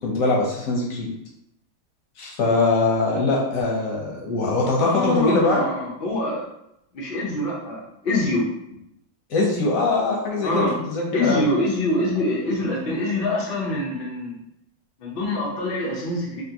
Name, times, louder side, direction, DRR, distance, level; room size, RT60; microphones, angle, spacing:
voice 1, 0.0-1.1 2.2-5.6 9.3-11.5, left 3 dB, 60° left, -2 dB, 0.9 m, -22 dB
voice 2, 4.8-6.4 6.9-8.5 10.4-10.7 11.1-14.3 15.0-16.4, left 1 dB, 80° left, -4 dB, 0.5 m, -25 dB
3.5 x 2.6 x 2.8 m, 0.82 s
omnidirectional pair, 2.1 m